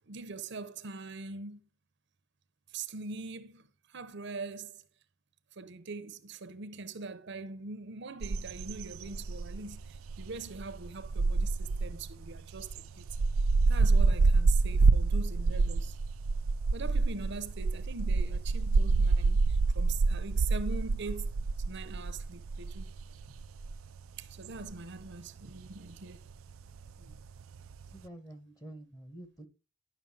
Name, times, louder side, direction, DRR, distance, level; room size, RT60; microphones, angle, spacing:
voice 1, 0.1-1.6 2.7-4.8 5.5-13.1 13.7-16.0 16.7-21.4 21.7-22.9 24.2-26.3 27.1-27.2, right 4 dB, 60° right, 0.8 m, -42 dB
sound 1, 8.2-28.0, right 3 dB, 85° right, 0.5 m, -28 dB
voice 2, 27.9-29.5, right 1 dB, 20° left, 1.7 m, -48 dB
11.0 x 6.3 x 4.7 m
head